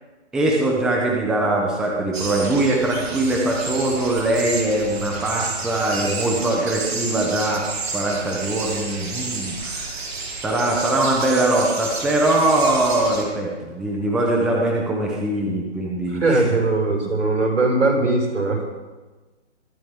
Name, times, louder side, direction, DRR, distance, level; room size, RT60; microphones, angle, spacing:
voice 1, 0.3-7.6 7.9-10.0 10.4-16.4, right 2 dB, ahead, -1 dB, 0.7 m, -22 dB
sound 1, 2.1-13.2, right 3 dB, 55° right, 4.3 m, -31 dB
voice 2, 16.1-18.7, right 2 dB, 85° right, -1 dB, 6.2 m, -20 dB
23.5 x 12.5 x 3.6 m, 1.2 s
hypercardioid pair, 150°, 36 cm